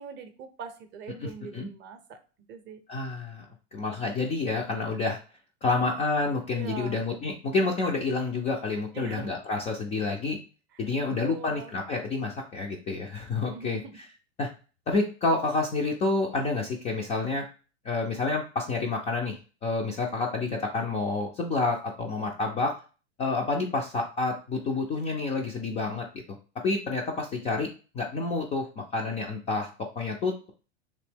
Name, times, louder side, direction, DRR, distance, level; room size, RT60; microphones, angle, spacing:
voice 1, 0.0-2.2 2.5-2.8 6.5-7.0 8.9-9.3 11.1-11.8 13.4-14.0, right 6 dB, 30° right, 8 dB, 0.6 m, -42 dB
voice 2, 1.2-1.7 2.9-3.5 3.7-5.2 5.6-10.4 10.8-13.8 14.4-14.5 14.9-17.4 17.8-19.4 19.6-22.7 23.2-26.1 26.6-27.7 27.9-29.7 30.0-30.5, left 3 dB, 20° left, 0 dB, 0.3 m, -29 dB
3.0 x 2.6 x 3.4 m, 0.35 s
hypercardioid pair, 110°, 37 cm